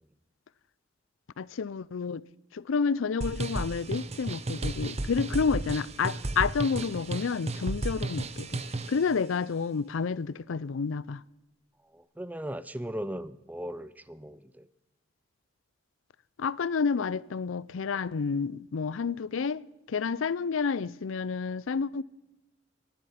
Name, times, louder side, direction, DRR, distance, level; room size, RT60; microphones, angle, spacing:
voice 1, 1.4-2.2 2.5-8.6 8.9-11.2 16.4-19.6 19.9-22.0, left 5 dB, 85° left, 0.5 m, -30 dB
sound 1, 3.2-9.0, right 2 dB, 35° right, 0.8 m, -33 dB
voice 2, 11.9-14.7, equal, 10° right, 0.5 m, -38 dB
19.5 x 11.0 x 5.8 m
head